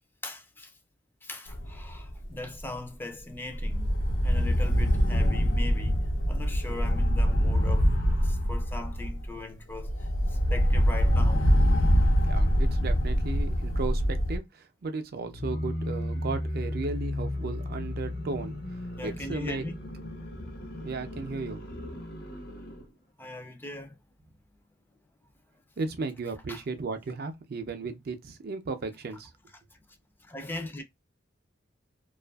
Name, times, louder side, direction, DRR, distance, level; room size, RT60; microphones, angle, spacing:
voice 1, 0.2-0.7 1.2-4.0 4.2-12.2 19.0-19.8 23.2-24.0 26.5-26.6 29.7-30.8, left 2 dB, 10° left, 0.4 m, -40 dB
sound 1, 1.5-2.2 2.6-2.8 3.5-9.3 9.7-14.4, equal, 90° left, 0.7 m, -24 dB
voice 2, 12.0-19.6 20.8-21.6 25.8-29.3, right 3 dB, 55° right, 0.4 m, -35 dB
sound 2, 15.2-22.9, left 1 dB, 55° left, 0.7 m, -35 dB
2.5 x 2.4 x 2.2 m
head